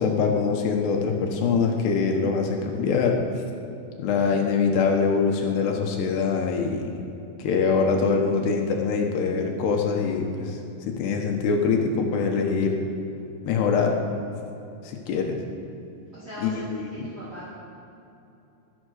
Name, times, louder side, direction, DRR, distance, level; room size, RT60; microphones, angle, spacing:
voice 1, 0.0-3.2 4.0-6.9 7.4-12.8 13.5-14.0 14.8-15.4 16.4-17.1, left 5 dB, 70° left, 2 dB, 3.1 m, -24 dB
voice 2, 16.1-17.5, equal, 15° right, -10 dB, 2.9 m, -40 dB
23.5 x 8.7 x 6.5 m, 2.8 s
omnidirectional pair, 5.3 m